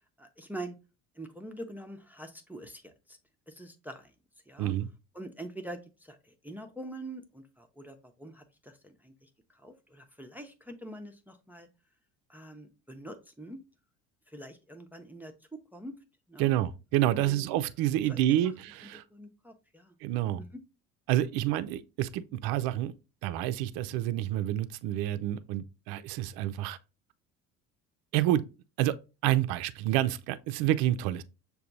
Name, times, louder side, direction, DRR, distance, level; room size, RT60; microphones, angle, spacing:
voice 1, 0.2-0.8 1.2-3.2 3.5-4.1 4.5-4.7 5.1-11.7 12.3-13.6 14.3-15.3 15.7-16.0 16.3-16.5 17.2-17.6 18.1-18.2 19.1-19.9 20.4-20.6, right 1 dB, 5° right, 0.5 m, -45 dB
voice 2, 16.4-19.0 20.0-20.4 21.1-22.9 23.2-26.8 28.1-28.4 28.8-29.0 29.2-31.2, right 13 dB, 55° right, 0.5 m, -28 dB
6.6 x 2.3 x 2.6 m
hypercardioid pair, 65°, 44 cm